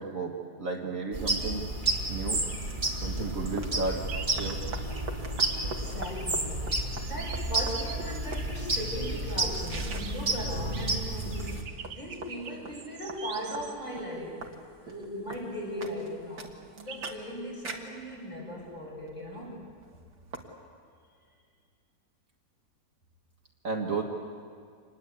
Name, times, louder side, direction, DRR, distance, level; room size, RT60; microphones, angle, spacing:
voice 1, 0.0-1.6 2.1-2.4 3.0-4.0 4.4-4.6 23.6-24.0, right 3 dB, 55° right, 0 dB, 2.1 m, -33 dB
sound 1, 1.1-11.6, right 2 dB, 30° right, 2.6 m, -31 dB
sound 2, 2.1-20.4, right 3 dB, 90° right, 2.5 m, -45 dB
sound 3, 4.1-5.2 6.7-8.3 10.0-10.4 10.7-11.1 11.5-13.8 16.9-17.2, right 6 dB, 70° right, 1.7 m, -44 dB
voice 2, 5.6-11.6 11.9-14.4 14.8-19.6, equal, 25° left, -4 dB, 8.2 m, -38 dB
27.0 x 20.5 x 8.3 m, 2.1 s
omnidirectional pair, 1.8 m